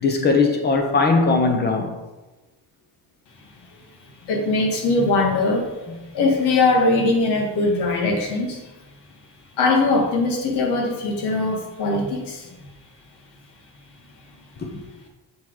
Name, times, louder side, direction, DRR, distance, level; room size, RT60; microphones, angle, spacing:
voice 1, 0.0-1.9 14.6-14.8, left 3 dB, 25° left, 0.9 m, -19 dB
voice 2, 4.2-5.7 6.1-8.6 9.6-12.6, left 3 dB, 90° left, 1.7 m, -21 dB
7.4 x 4.1 x 4.7 m
cardioid pair, 175°, 39 cm